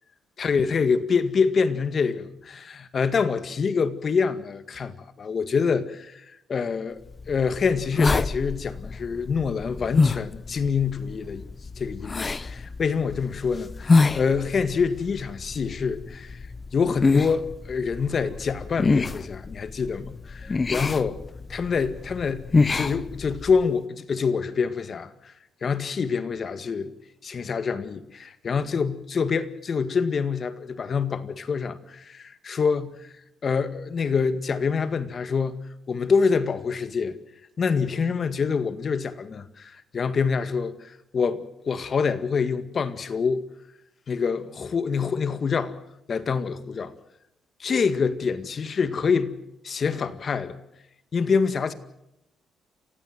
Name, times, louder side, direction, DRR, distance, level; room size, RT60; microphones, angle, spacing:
voice 1, 0.4-7.0 7.3-11.4 11.8-16.4 16.7-21.2 21.5-22.4 22.7-25.1 25.6-26.9 27.2-32.9 33.4-37.2 37.6-43.4 44.1-45.7 46.1-46.9 47.6-49.3 49.6-50.6 51.1-51.7, left 5 dB, 45° left, 1.9 m, -26 dB
sound 1, 7.1-23.7, left 3 dB, 30° left, 0.8 m, -27 dB
28.5 x 16.0 x 7.8 m
cardioid pair, 90°, 0 cm